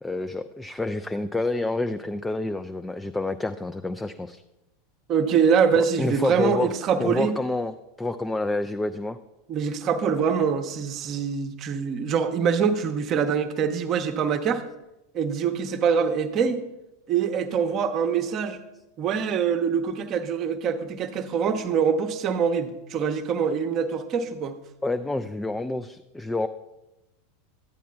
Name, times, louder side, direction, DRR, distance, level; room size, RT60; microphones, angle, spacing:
voice 1, 0.0-4.4 5.8-6.7 7.0-9.2 24.8-26.5, left 2 dB, 10° left, 9 dB, 0.3 m, -28 dB
voice 2, 5.1-7.4 9.5-14.6 15.1-16.6 17.1-18.6 19.0-24.6, right 6 dB, 35° right, 7 dB, 0.7 m, -24 dB
12.0 x 9.1 x 2.3 m, 0.95 s
figure-of-eight pair, 85°, 0 cm